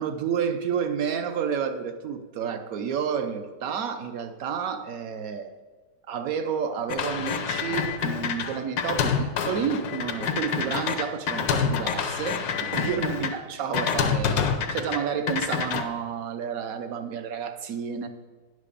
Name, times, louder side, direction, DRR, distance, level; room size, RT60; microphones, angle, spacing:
voice 1, 0.0-5.5 6.1-12.4 12.7-18.1, right 7 dB, 65° right, 7 dB, 1.0 m, -30 dB
sound 1, 6.9-13.3 13.7-15.0 15.3-15.8, left 6 dB, 90° left, 1.4 m, -27 dB
10.0 x 5.0 x 6.7 m, 1.3 s
omnidirectional pair, 1.9 m